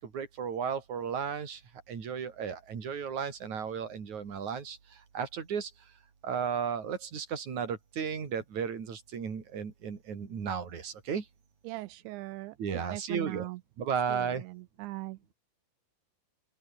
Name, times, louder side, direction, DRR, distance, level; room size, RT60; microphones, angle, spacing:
voice 1, 0.0-1.6 1.9-5.7 6.2-11.3 12.6-13.5 13.8-14.4, right 7 dB, 40° right, 4.6 m, -34 dB
voice 2, 11.6-12.6 12.9-13.6 14.1-15.2, right 20 dB, 80° right, 2.8 m, -40 dB
open air
omnidirectional pair, 5.6 m